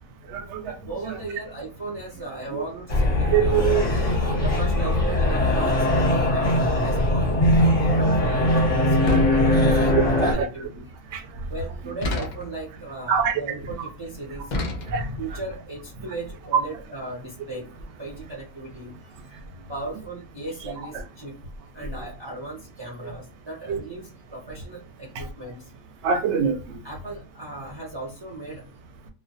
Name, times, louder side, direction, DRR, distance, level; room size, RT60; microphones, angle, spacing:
voice 1, 0.3-0.7 2.5-2.6 3.3-3.8 4.3-4.5 9.0-9.2 9.9-10.5 11.1-11.2 13.1-13.4 14.9-15.1 23.7-23.8 26.0-26.8, right 7 dB, 65° right, 0.8 m, -24 dB
voice 2, 0.8-3.8 4.4-7.4 7.8-10.9 11.5-14.5 15.2-17.7 18.0-19.4 19.7-21.4 21.7-25.7 26.8-28.6, right 2 dB, 40° right, 0.4 m, -37 dB
sound 1, 2.9-10.3, left 1 dB, 35° left, 0.6 m, -20 dB
sound 2, 9.1-10.0 12.0-12.7 14.5-15.3, left 2 dB, 80° left, 0.4 m, -30 dB
2.2 x 2.1 x 2.6 m
omnidirectional pair, 1.4 m